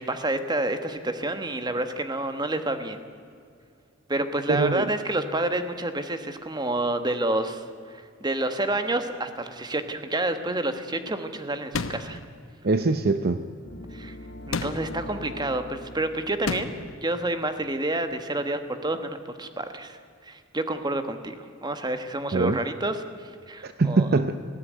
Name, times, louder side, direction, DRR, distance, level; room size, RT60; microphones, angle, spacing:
voice 1, 0.0-3.0 4.1-7.6 7.9-12.2 13.9-14.1 14.5-16.7 17.0-20.0 20.2-24.1, right 2 dB, 20° right, 8 dB, 1.3 m, -29 dB
voice 2, 4.5-4.9 12.6-13.4 22.3-22.6 23.6-24.3, right 3 dB, 50° right, 10 dB, 0.7 m, -23 dB
sound 1, 11.7-12.3 14.5-15.0 16.5-17.0, left 4 dB, 85° left, 0.9 m, -31 dB
sound 2, 13.6-17.6, left 1 dB, 55° left, 1.7 m, -43 dB
19.5 x 15.5 x 9.3 m, 2.3 s
head